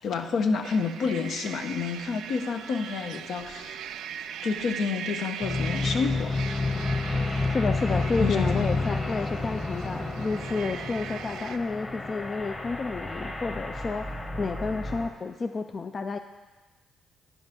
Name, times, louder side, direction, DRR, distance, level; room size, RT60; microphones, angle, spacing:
voice 1, 0.0-3.8 4.4-6.3 6.7-6.8 7.1-7.2 8.2-8.8, left 5 dB, 70° left, 6 dB, 0.8 m, -29 dB
sound 1, 0.6-11.6, right 8 dB, 80° right, 0.4 m, -40 dB
sound 2, 5.4-15.1, left 2 dB, 20° left, 1.3 m, -30 dB
voice 2, 7.5-16.2, left 4 dB, 40° left, 7 dB, 0.4 m, -30 dB
9.1 x 5.6 x 5.9 m, 1.2 s
cardioid pair, 90°, 0 cm